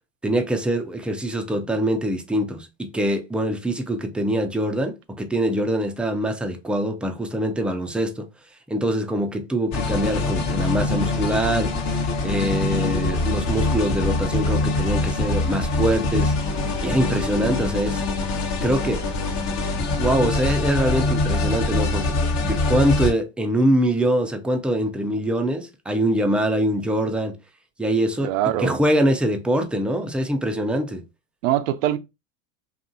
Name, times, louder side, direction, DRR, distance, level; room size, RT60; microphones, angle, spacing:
voice 1, 0.2-8.3 8.7-11.8 12.2-16.3 16.8-18.0 18.6-19.0 20.0-27.4 27.8-28.3 28.6-31.0, right 1 dB, 5° right, 0.4 m, -23 dB
sound 1, 9.7-23.1, left 2 dB, 45° left, 0.9 m, -24 dB
voice 2, 28.2-28.8 31.4-32.0, right 12 dB, 80° right, 0.6 m, -22 dB
2.8 x 2.4 x 2.5 m
hypercardioid pair, 95°, 39 cm